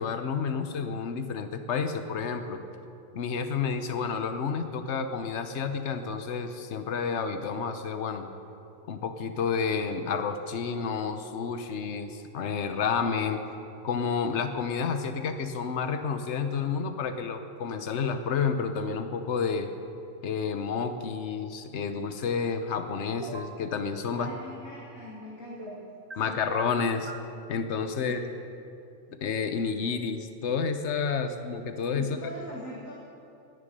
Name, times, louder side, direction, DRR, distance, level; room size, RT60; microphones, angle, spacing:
voice 1, 0.0-2.6 3.1-8.3 8.9-13.4 13.8-19.7 20.2-24.3 26.1-27.1 27.5-28.2 29.1-32.1, left 6 dB, 60° left, 8 dB, 1.2 m, -30 dB
sound 1, 23.2-23.5 25.6-26.2 26.5-27.3, right 3 dB, 20° right, 1.1 m, -40 dB
voice 2, 24.1-25.8 26.1-26.4 28.0-28.2 31.2-31.4 32.0-32.9, left 1 dB, 75° left, -5 dB, 2.4 m, -41 dB
20.0 x 10.0 x 5.4 m, 2.7 s
omnidirectional pair, 1.4 m